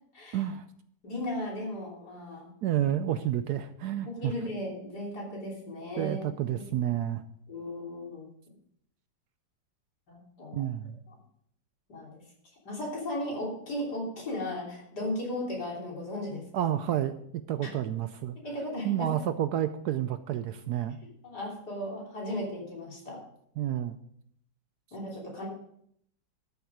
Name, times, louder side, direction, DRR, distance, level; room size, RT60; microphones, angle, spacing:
voice 1, 0.3-0.7 2.6-4.3 6.0-7.2 10.5-11.0 16.5-17.2 17.5-18.4 18.8-21.0 23.6-24.0, right 11 dB, 70° right, 11 dB, 1.0 m, -30 dB
voice 2, 1.0-2.5 4.0-6.2 7.5-8.3 10.1-10.6 11.9-12.1 12.7-16.8 17.6-17.7 18.4-19.1 21.2-23.2 24.9-25.5, left 1 dB, 60° left, -3 dB, 3.8 m, -36 dB
13.0 x 7.2 x 4.9 m, 0.69 s
omnidirectional pair, 2.0 m